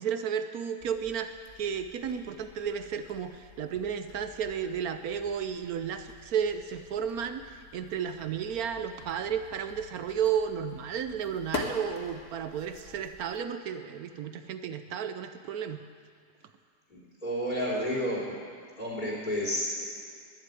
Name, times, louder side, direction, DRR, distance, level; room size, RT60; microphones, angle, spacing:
voice 1, 0.0-15.8, right 7 dB, 65° right, 9 dB, 1.1 m, -33 dB
sound 1, 0.8-13.4, left 3 dB, 45° left, 1.7 m, -45 dB
voice 2, 16.9-18.3 18.8-19.8, equal, 25° left, -5 dB, 4.0 m, -31 dB
12.0 x 11.0 x 9.2 m, 2.2 s
omnidirectional pair, 1.9 m